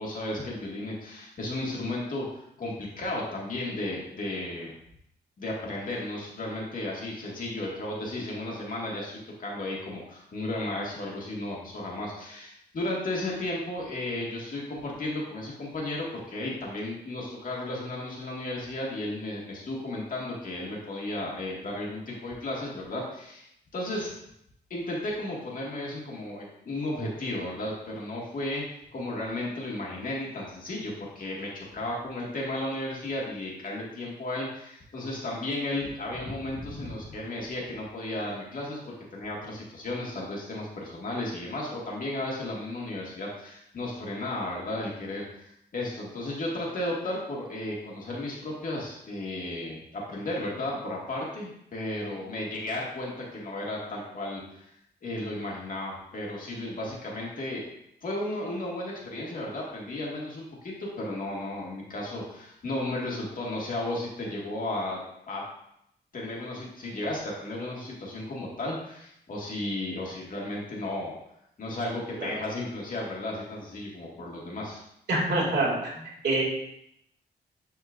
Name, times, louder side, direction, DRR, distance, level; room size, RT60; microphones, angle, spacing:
voice 1, 0.0-4.7 5.4-23.4 23.7-24.2 24.7-28.6 28.9-54.7 55.0-57.7 58.0-65.0 65.3-65.4 66.1-71.1 71.6-74.8, left 1 dB, 50° left, -3 dB, 2.0 m, -34 dB
voice 2, 75.1-75.7 76.0-76.4, right 2 dB, 75° right, -4 dB, 2.5 m, -25 dB
10.5 x 4.4 x 2.6 m, 0.77 s
wide cardioid pair, 130°, 18 cm